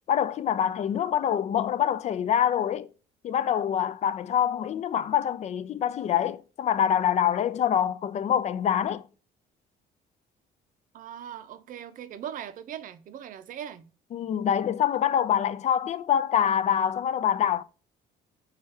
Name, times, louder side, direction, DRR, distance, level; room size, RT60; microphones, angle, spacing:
voice 1, 0.1-2.9 3.2-9.0 14.1-17.6, left 9 dB, 40° left, 0.4 m, -25 dB
voice 2, 10.9-13.9, right 9 dB, 50° right, 0.5 m, -40 dB
4.7 x 2.4 x 4.1 m
cardioid pair, 110°, 17 cm